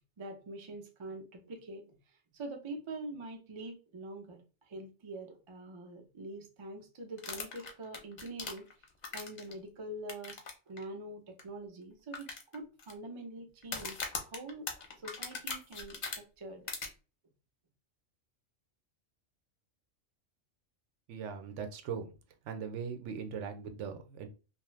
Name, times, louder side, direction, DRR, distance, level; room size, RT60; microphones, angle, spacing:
voice 1, 0.2-2.0 2.3-8.7 9.1-10.4 10.7-12.3 12.5-14.7 14.9-16.7, right 2 dB, 45° right, 3 dB, 0.4 m, -44 dB
sound 1, 7.2-9.5 10.1-10.5 10.8-10.9 11.4-11.5 12.1-12.9 13.6-16.2 16.7-16.9, left 4 dB, 45° left, 0.6 m, -39 dB
voice 2, 21.1-22.1 22.5-24.3, right 6 dB, 75° right, 6 dB, 0.9 m, -40 dB
2.7 x 2.2 x 3.1 m, 0.32 s
omnidirectional pair, 1.3 m